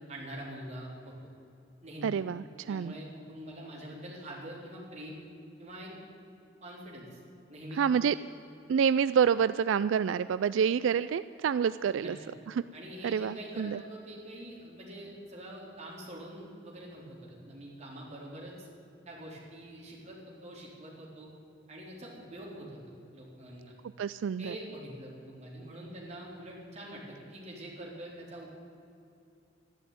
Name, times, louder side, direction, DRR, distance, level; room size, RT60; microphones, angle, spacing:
voice 1, 0.1-1.1 1.8-2.1 2.7-5.3 5.6-5.9 6.6-7.2 7.5-7.8 11.9-12.1 12.7-18.7 19.1-21.3 21.7-22.8 23.1-23.7 24.4-28.5, right 1 dB, 35° right, -3 dB, 4.1 m, -45 dB
voice 2, 2.0-2.9 7.8-8.2 8.7-12.2 13.0-13.8 24.0-24.5, right 7 dB, 80° right, 15 dB, 0.3 m, -27 dB
13.5 x 11.5 x 9.3 m, 2.7 s
head